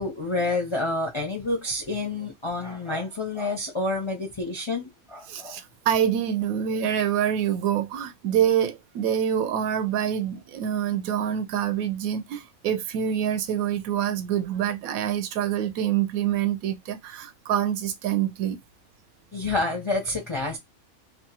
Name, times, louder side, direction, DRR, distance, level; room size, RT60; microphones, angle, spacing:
voice 1, 0.0-5.6 19.3-20.6, left 2 dB, 40° left, 0.4 m, -28 dB
voice 2, 5.3-18.6, right 9 dB, 80° right, 1.0 m, -26 dB
2.8 x 2.3 x 2.8 m
omnidirectional pair, 1.5 m